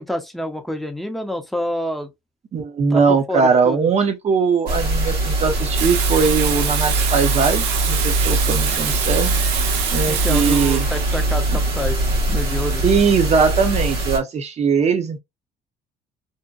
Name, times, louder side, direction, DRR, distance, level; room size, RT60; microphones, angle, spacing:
voice 1, 0.0-2.1 2.9-3.9 8.5-8.8 10.1-12.8, equal, ahead, 0.6 m, -28 dB
voice 2, 2.5-9.3 9.9-10.9 11.5-11.6 12.8-15.2, right 5 dB, 40° right, 0.7 m, -20 dB
sound 1, 4.7-14.2, right 1 dB, 70° right, 1.2 m, -22 dB
Water tap faucet / Sink (filling or washing), 5.7-13.4, right 8 dB, 90° right, 0.5 m, -26 dB
2.7 x 2.1 x 2.3 m
cardioid pair, 110°, 17 cm